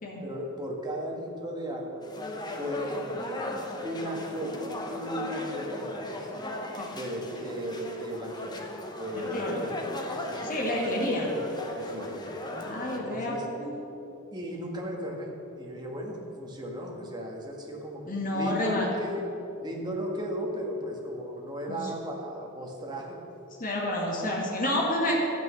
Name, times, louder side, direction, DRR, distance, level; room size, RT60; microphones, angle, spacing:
voice 1, 0.2-2.0 2.6-3.4 3.8-6.3 6.9-8.6 9.0-9.7 10.2-10.8 11.8-12.4 12.9-13.5 14.3-18.0 18.3-19.3 19.6-23.2, equal, 20° right, -1 dB, 1.7 m, -36 dB
sound 1, 2.0-13.0, left 1 dB, 20° left, 1.0 m, -37 dB
voice 2, 9.3-9.7 10.4-11.3 12.5-13.7 18.1-18.9 21.7-21.8 23.6-25.1, left 1 dB, 40° left, -3 dB, 2.0 m, -29 dB
12.0 x 9.3 x 6.4 m, 3.0 s
head